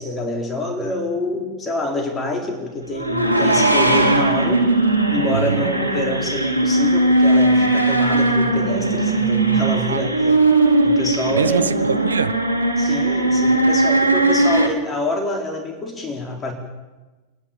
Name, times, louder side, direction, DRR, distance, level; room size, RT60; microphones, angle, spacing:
voice 1, 0.0-4.6 5.1-10.2 10.8-11.7 12.8-16.5, left 1 dB, 20° left, 3 dB, 4.0 m, -26 dB
sound 1, 2.9-14.7, right 2 dB, 85° left, 2.4 m, -18 dB
voice 2, 5.3-5.7 9.9-10.3 11.3-12.3, right 5 dB, 75° right, 11 dB, 0.8 m, -23 dB
29.5 x 11.0 x 9.0 m, 1.2 s
figure-of-eight pair, 90°, 0 cm